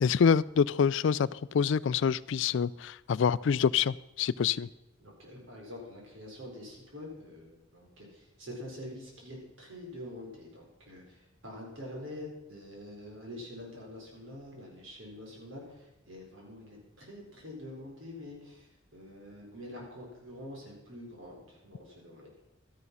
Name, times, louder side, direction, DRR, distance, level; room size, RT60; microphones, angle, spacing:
voice 1, 0.0-4.7, left 6 dB, 65° left, 0.4 m, -26 dB
voice 2, 5.0-22.3, left 1 dB, 80° right, 4.8 m, -46 dB
12.5 x 11.0 x 5.5 m
head